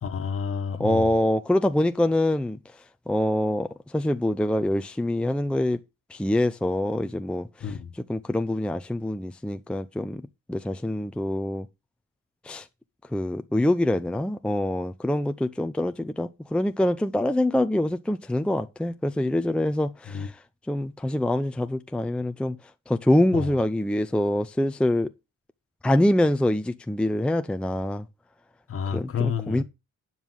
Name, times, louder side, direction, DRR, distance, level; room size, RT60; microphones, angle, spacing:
voice 1, 0.0-1.2 7.6-7.9 20.1-20.3 23.3-23.6 28.7-29.6, left 6 dB, 45° left, 1.4 m, -30 dB
voice 2, 0.8-2.6 3.1-5.8 6.1-7.5 8.1-10.2 10.5-11.7 12.4-12.7 13.1-20.3 20.7-22.6 22.9-25.1 25.8-28.1 28.9-29.6, left 1 dB, 5° left, 0.5 m, -25 dB
9.2 x 5.5 x 6.2 m
cardioid pair, 90°, 30 cm